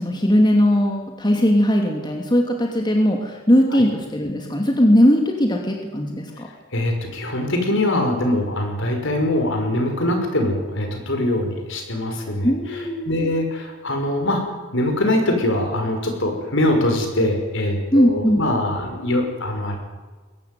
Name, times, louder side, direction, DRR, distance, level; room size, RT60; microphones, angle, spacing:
voice 1, 0.0-6.5 12.4-13.3 17.9-18.4, equal, 20° left, 1 dB, 2.8 m, -19 dB
voice 2, 6.7-19.8, left 1 dB, 65° left, 4 dB, 5.9 m, -23 dB
22.5 x 18.0 x 9.4 m, 1.3 s
head